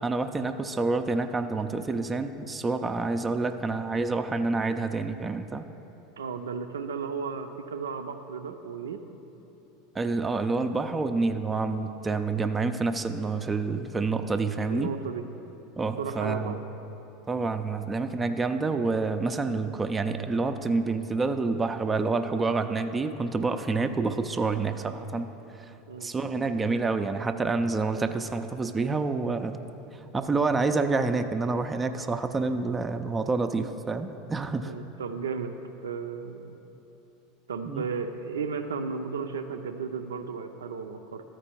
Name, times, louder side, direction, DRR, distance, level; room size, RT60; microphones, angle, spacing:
voice 1, 0.0-5.6 9.9-14.9 15.8-16.6 17.3-25.3 25.6-25.7 26.0-29.6 30.1-34.7 37.7-37.8, right 3 dB, 20° right, 8 dB, 0.4 m, -28 dB
voice 2, 6.2-9.0 14.7-15.2 16.0-16.6 25.9-26.1 34.6-35.5 35.8-36.6 37.5-41.2, right 5 dB, 85° right, 7 dB, 0.4 m, -34 dB
12.5 x 4.5 x 4.4 m, 3.0 s
hypercardioid pair, 90°, 0 cm